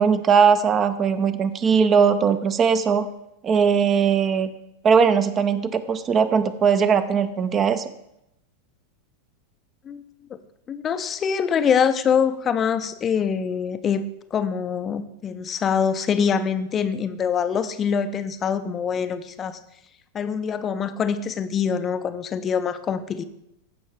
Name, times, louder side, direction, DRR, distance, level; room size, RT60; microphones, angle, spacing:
voice 1, 0.0-3.1 3.4-4.5 4.8-7.9, right 6 dB, 25° right, 12 dB, 0.5 m, -19 dB
voice 2, 10.7-19.6 20.1-23.2, left 7 dB, 25° left, 11 dB, 0.5 m, -24 dB
14.5 x 5.3 x 3.5 m, 0.83 s
figure-of-eight pair, 90°, 0 cm